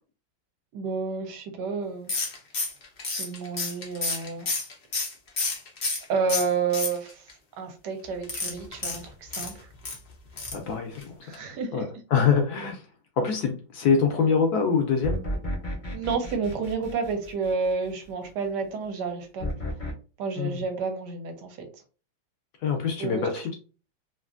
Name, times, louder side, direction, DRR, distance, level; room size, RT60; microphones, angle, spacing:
voice 1, 0.7-2.3 3.2-4.5 6.1-7.3 7.6-9.7 11.2-11.8 15.9-19.5 20.2-21.7 23.0-23.3, right 5 dB, 70° right, 5 dB, 1.2 m, -30 dB
sound 1, 2.1-6.0 6.3-7.3 8.2-10.0 10.4-10.7 11.0-11.1 11.3-11.4, left 3 dB, 90° left, 0.5 m, -30 dB
voice 2, 10.5-11.4 11.7-12.8 13.2-15.2 20.4-20.6 22.6-23.6, left 6 dB, 70° left, 4 dB, 0.9 m, -25 dB
sound 2, 15.0-17.9 19.4-19.9, equal, 45° left, 0.6 m, -33 dB
3.1 x 2.4 x 2.4 m, 0.36 s
omnidirectional pair, 2.1 m